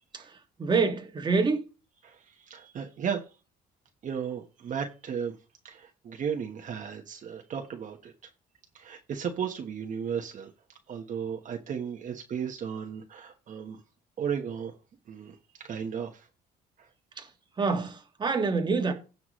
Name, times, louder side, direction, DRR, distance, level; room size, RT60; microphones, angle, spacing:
voice 1, 0.6-1.6 17.2-17.3 17.6-18.9, right 4 dB, 25° right, 1.7 m, -26 dB
voice 2, 2.0-3.2 4.0-5.4 5.6-8.1 8.7-10.5 10.9-13.8 14.2-14.7 15.1-15.3 15.6-16.3 16.8-16.9, right 7 dB, 50° right, 1.2 m, -35 dB
16.5 x 5.9 x 3.1 m
cardioid pair, 110°, 17 cm